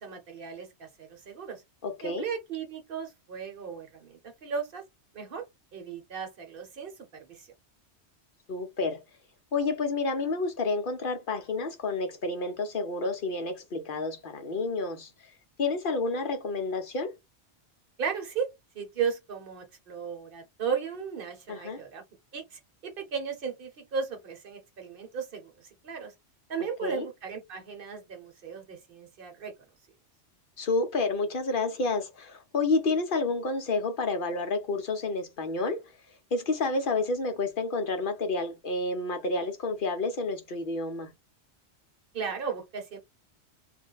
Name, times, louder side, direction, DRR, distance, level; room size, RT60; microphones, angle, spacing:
voice 1, 0.0-1.6 2.0-4.8 5.1-5.4 5.7-7.5 18.0-22.0 22.3-26.1 26.5-29.5 42.1-43.0, right 6 dB, 55° right, 1.1 m, -36 dB
voice 2, 1.8-2.2 8.5-9.0 9.5-15.1 15.6-17.2 21.5-21.8 26.8-27.1 30.6-35.9 36.3-41.1, left 3 dB, 55° left, 0.8 m, -29 dB
2.5 x 2.1 x 3.8 m
omnidirectional pair, 1.2 m